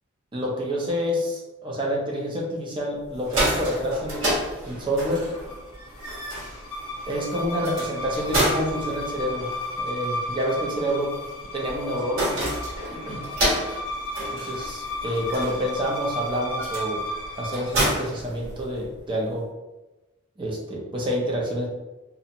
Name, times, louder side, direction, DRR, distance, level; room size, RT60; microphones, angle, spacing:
voice 1, 0.3-4.3 4.7-5.3 7.1-11.1 11.5-12.5 12.9-13.2 14.3-17.0 17.4-19.5 20.4-21.7, equal, 25° right, -3 dB, 0.5 m, -28 dB
sound 1, 3.1-19.0, right 1 dB, 85° right, 1.3 m, -30 dB
sound 2, 5.1-17.8, left 1 dB, 80° left, 0.5 m, -34 dB
2.5 x 2.1 x 2.8 m, 1.1 s
head